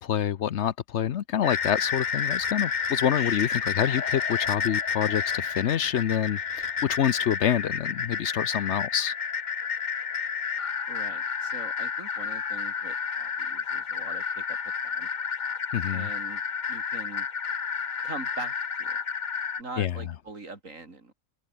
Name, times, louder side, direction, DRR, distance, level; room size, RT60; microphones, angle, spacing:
voice 1, 0.0-9.1 15.7-16.1 19.8-20.0, left 9 dB, 65° left, 1.0 m, -27 dB
sound 1, 1.4-19.6, left 6 dB, 40° left, 1.0 m, -30 dB
voice 2, 10.9-14.6 14.8-15.1 15.9-16.4 16.7-17.3 18.0-19.0 19.6-21.1, right 3 dB, 75° right, 4.1 m, -42 dB
open air
omnidirectional pair, 1.4 m